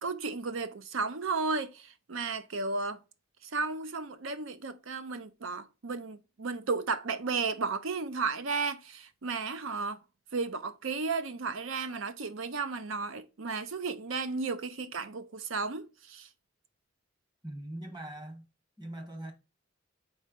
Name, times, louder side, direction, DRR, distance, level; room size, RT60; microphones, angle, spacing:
voice 1, 0.0-3.0 3.4-10.0 10.3-16.3, right 4 dB, 65° right, 0.6 m, -34 dB
voice 2, 17.4-18.4 18.8-19.3, right 1 dB, 20° right, 1.2 m, -41 dB
4.3 x 4.3 x 5.1 m
head